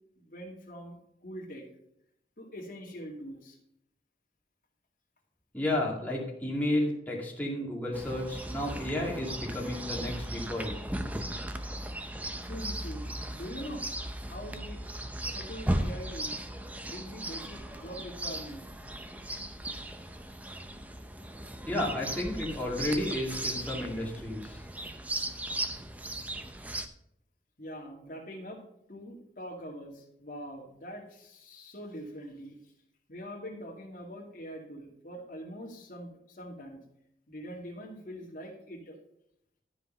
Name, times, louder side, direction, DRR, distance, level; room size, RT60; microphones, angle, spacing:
voice 1, 0.2-1.0 1.2-1.7 2.4-3.6 12.4-13.9 14.2-14.8 15.3-16.3 16.8-18.6 27.6-28.6 28.9-32.7 33.1-36.8 37.3-39.0, equal, 50° left, 0 dB, 2.3 m, -43 dB
voice 2, 5.5-10.7 21.7-24.6, left 1 dB, 10° left, -3 dB, 2.2 m, -32 dB
Chirp tweet, 7.9-26.9, right 1 dB, 10° right, 0.6 m, -37 dB
12.5 x 5.2 x 5.6 m, 0.77 s
head